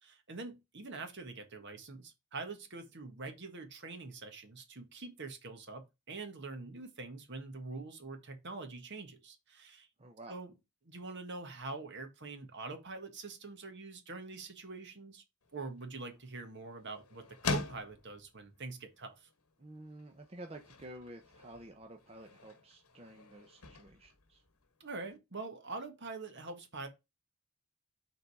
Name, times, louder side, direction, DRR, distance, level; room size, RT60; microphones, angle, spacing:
voice 1, 0.0-9.9 10.3-10.5 10.8-15.2 15.5-19.3 24.8-26.9, right 3 dB, 55° right, 1.6 m, -45 dB
voice 2, 10.0-10.4 19.6-24.4, right 1 dB, 25° right, 0.8 m, -51 dB
sound 1, 15.4-25.2, left 4 dB, 75° left, 1.2 m, -45 dB
6.9 x 3.9 x 4.7 m
head